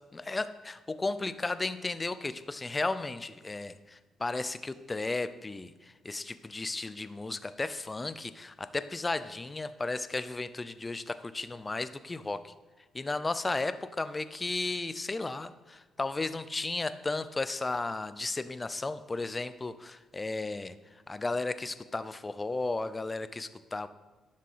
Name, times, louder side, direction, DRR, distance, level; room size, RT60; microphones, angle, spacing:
voice 1, 0.1-12.5 12.9-20.8 21.1-23.9, left 3 dB, 20° left, 13 dB, 0.6 m, -34 dB
11.0 x 6.5 x 5.7 m, 1.3 s
cardioid pair, 90°, 0 cm